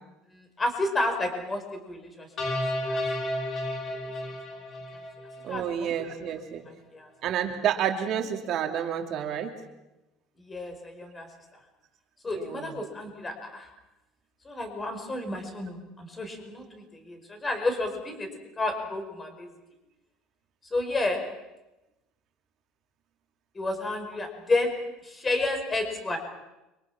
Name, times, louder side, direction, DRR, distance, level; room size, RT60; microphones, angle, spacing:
voice 1, 0.3-3.0 3.9-4.6 5.5-5.9 6.6-7.1 10.4-11.3 12.2-13.7 14.4-18.3 18.6-19.5 20.7-21.2 23.5-24.7 25.0-26.2, left 2 dB, 15° left, 5 dB, 5.1 m, -31 dB
sound 1, 2.4-5.7, left 1 dB, 40° left, 4.8 m, -32 dB
voice 2, 5.4-6.6 7.2-9.5 12.4-12.7, right 9 dB, 45° right, 3 dB, 2.8 m, -29 dB
30.0 x 24.5 x 6.1 m, 0.98 s
cardioid pair, 145°, 0 cm